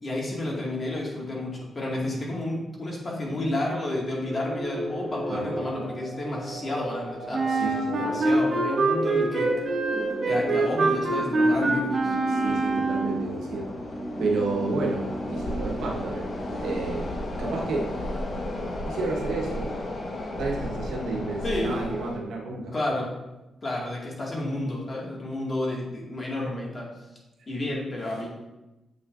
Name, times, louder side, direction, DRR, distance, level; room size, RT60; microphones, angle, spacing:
voice 1, 0.0-7.6 8.0-9.5 10.3-12.2 21.4-21.8 22.7-23.1 23.6-26.9 27.5-28.3, left 1 dB, 35° left, -2 dB, 1.9 m, -31 dB
sound 1, 4.3-18.0, equal, 15° right, 1.4 m, -35 dB
sound 2, 5.2-5.3 5.6-5.7 6.5-6.7 7.0-7.1 7.7-8.0 8.5-22.1, left 1 dB, 50° left, 1.1 m, -35 dB
Wind instrument woodwind instrument, 7.3-13.3, right 3 dB, 50° right, 1.3 m, -25 dB
voice 2, 7.5-8.0 12.3-13.7 14.2-16.3 16.6-17.1 17.4-17.9 18.8-19.7 20.4-22.7, right 3 dB, 90° right, -1 dB, 1.2 m, -31 dB
7.4 x 6.3 x 2.5 m, 1.0 s
cardioid pair, 85°, 0 cm